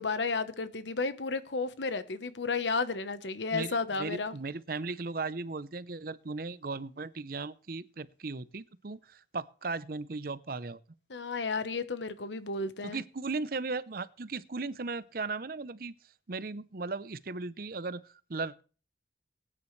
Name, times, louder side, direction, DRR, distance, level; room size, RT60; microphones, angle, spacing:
voice 1, 0.0-4.3 11.1-13.0, left 4 dB, 85° left, 1.1 m, -32 dB
voice 2, 3.5-10.8 12.8-15.9 16.3-18.6, right 3 dB, 55° right, 0.7 m, -37 dB
20.0 x 9.9 x 3.2 m
head